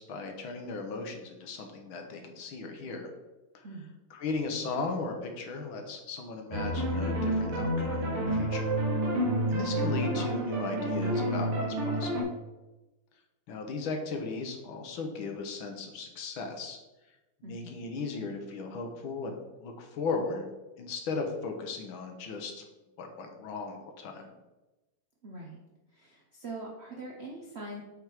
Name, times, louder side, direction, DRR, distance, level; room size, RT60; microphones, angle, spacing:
voice 1, 0.0-3.1 3.5-3.7 4.1-8.7 9.5-12.3 13.5-16.8 17.4-20.5 20.8-22.7 23.0-24.3, left 4 dB, 70° left, 4 dB, 1.7 m, -36 dB
sound 1, 6.5-12.2, right 1 dB, 90° right, 2.1 m, -29 dB
voice 2, 25.2-25.6 25.9-27.8, right 2 dB, 60° right, -2 dB, 0.6 m, -42 dB
7.7 x 3.5 x 4.6 m, 1.1 s
omnidirectional pair, 2.3 m